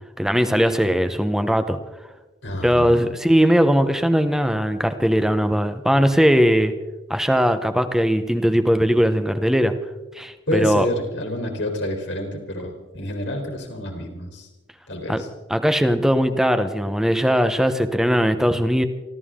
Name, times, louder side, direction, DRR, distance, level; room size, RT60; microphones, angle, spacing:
voice 1, 0.2-1.8 2.6-6.7 7.1-9.7 10.2-10.9 15.1-15.2 15.5-18.8, equal, 5° right, 9 dB, 1.0 m, -19 dB
voice 2, 2.4-3.0 10.5-14.5 14.9-15.3, left 1 dB, 80° left, 2 dB, 3.6 m, -28 dB
28.0 x 13.5 x 3.7 m, 1.1 s
head